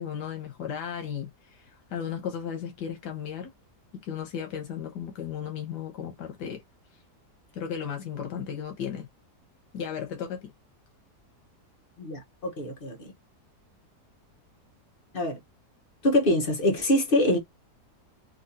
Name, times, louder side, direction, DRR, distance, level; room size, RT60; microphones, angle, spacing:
voice 1, 0.0-3.5 4.0-6.6 7.5-9.1 9.7-10.5, left 8 dB, 90° left, 1.5 m, -35 dB
voice 2, 12.0-13.1 15.1-15.4 16.0-17.4, left 1 dB, 40° left, 1.1 m, -24 dB
3.7 x 2.7 x 2.6 m
omnidirectional pair, 1.7 m